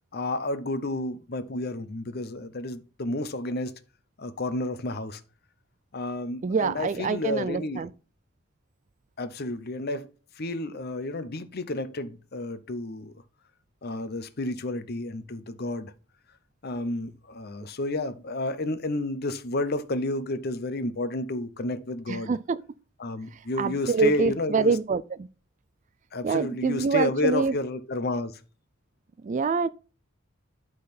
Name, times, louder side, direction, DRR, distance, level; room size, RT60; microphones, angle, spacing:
voice 1, 0.1-3.8 4.2-5.2 5.9-7.8 9.2-10.1 10.4-13.1 13.8-15.9 16.6-22.3 23.0-24.7 26.1-28.4, left 2 dB, 45° left, 0.7 m, -31 dB
voice 2, 6.4-7.9 22.1-22.6 23.3-25.3 26.2-27.6 29.2-29.7, right 4 dB, 35° right, 0.3 m, -26 dB
11.5 x 3.9 x 4.2 m
head